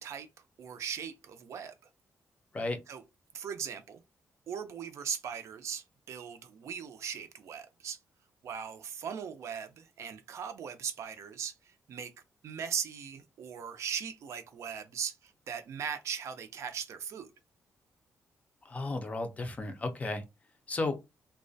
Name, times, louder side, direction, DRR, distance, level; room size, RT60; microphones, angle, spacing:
voice 1, 0.0-1.7 2.9-3.0 3.3-4.0 4.5-8.0 8.4-12.1 12.4-17.3, right 7 dB, 60° right, 0.4 m, -39 dB
voice 2, 18.7-20.2 20.7-20.9, left 2 dB, 25° left, 0.4 m, -33 dB
2.3 x 2.1 x 2.6 m
wide cardioid pair, 150°, 5 cm